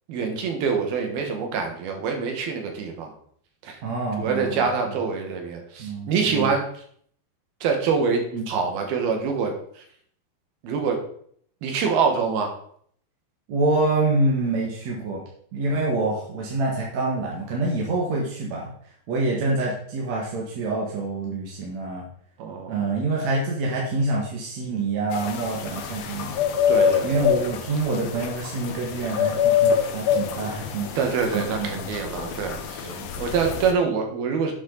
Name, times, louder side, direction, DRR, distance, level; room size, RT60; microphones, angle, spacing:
voice 1, 0.1-3.1 3.6-3.8 4.2-6.7 7.6-9.5 10.6-11.0 11.6-12.5 22.4-22.8 26.7-27.5 31.0-32.9 33.2-34.5, right 5 dB, 75° right, 3 dB, 3.4 m, -25 dB
voice 2, 3.8-4.9 5.8-6.5 8.3-8.5 13.5-15.2 15.5-18.7 19.1-22.0 22.7-26.4 27.0-30.9 31.3-31.8 32.1-32.4 32.8-33.1, right 2 dB, 50° right, -3 dB, 2.7 m, -26 dB
sound 1, 25.1-33.7, left 8 dB, 85° left, 1.4 m, -26 dB
11.0 x 8.5 x 4.0 m, 0.62 s
omnidirectional pair, 4.5 m